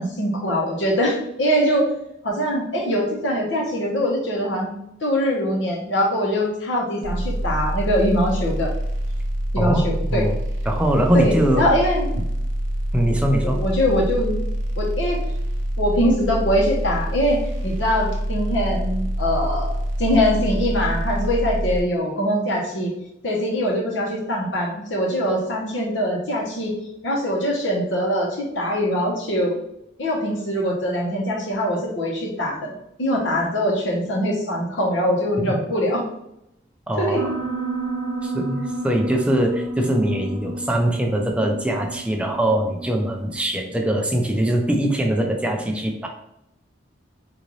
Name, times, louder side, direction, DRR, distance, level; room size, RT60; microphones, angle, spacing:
voice 1, 0.0-1.9 2.2-4.7 5.0-8.7 9.5-10.2 11.1-12.2 13.5-14.4 14.8-15.2 15.8-22.9 23.2-26.7 27.0-29.6 30.0-32.7 33.0-36.1 37.0-37.2, equal, 75° left, -1 dB, 1.0 m, -22 dB
sound 1, 7.0-21.8, equal, 75° right, 0.6 m, -26 dB
voice 2, 10.7-11.7 12.9-13.6 36.9-37.3 38.2-46.1, right 1 dB, 5° right, 1 dB, 0.4 m, -22 dB
Piano, 37.1-43.3, right 2 dB, 40° right, 0.8 m, -31 dB
3.8 x 2.6 x 3.1 m, 0.80 s
head